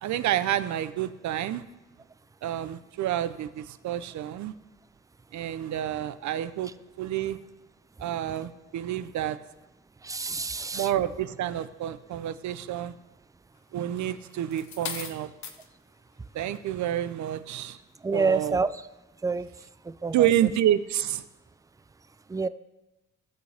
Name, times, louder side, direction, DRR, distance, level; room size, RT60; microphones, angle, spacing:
voice 1, 0.0-1.6 2.4-4.5 5.3-6.7 7.0-7.4 8.0-9.4 10.7-12.9 13.7-15.3 16.3-17.8 18.1-18.6 20.1-21.2, right 11 dB, 70° right, 13 dB, 0.7 m, -28 dB
voice 2, 10.0-10.9 18.0-18.7 19.2-19.5 19.9-20.3 22.3-22.5, right 4 dB, 10° right, 14 dB, 0.4 m, -27 dB
sound 1, 14.0-15.7 16.4-16.7, left 7 dB, 65° left, 1.1 m, -38 dB
16.5 x 6.4 x 3.4 m, 1.0 s
cardioid pair, 90°, 30 cm